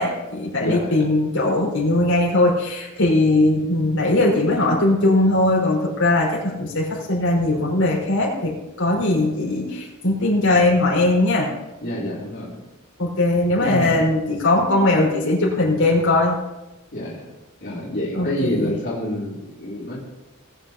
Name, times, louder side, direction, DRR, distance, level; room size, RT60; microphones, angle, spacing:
voice 1, 0.0-11.5 13.0-16.3 18.1-18.7, left 2 dB, 90° left, -4 dB, 4.9 m, -20 dB
voice 2, 0.6-0.9 11.8-12.7 13.6-14.0 16.9-17.3 17.6-20.0, left 1 dB, 55° left, -7 dB, 3.6 m, -27 dB
21.0 x 9.3 x 2.9 m, 1.0 s
head